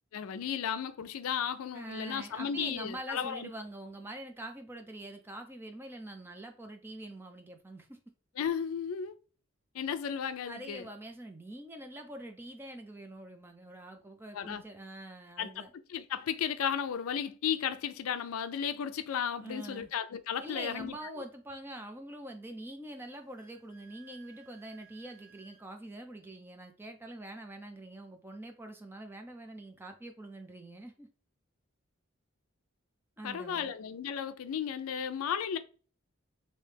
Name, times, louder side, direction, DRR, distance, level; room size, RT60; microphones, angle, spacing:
voice 1, 0.1-3.5 8.4-9.2 9.7-10.9 14.3-14.6 15.4-15.6 15.9-21.0 33.2-35.6, left 8 dB, 90° left, 0.4 m, -34 dB
voice 2, 1.7-8.0 10.4-15.7 19.4-19.9 20.4-31.1 33.2-33.8, right 1 dB, 10° right, 0.5 m, -45 dB
Wind instrument woodwind instrument, 23.1-25.7, right 7 dB, 20° left, 0.9 m, -60 dB
3.1 x 2.7 x 3.3 m
head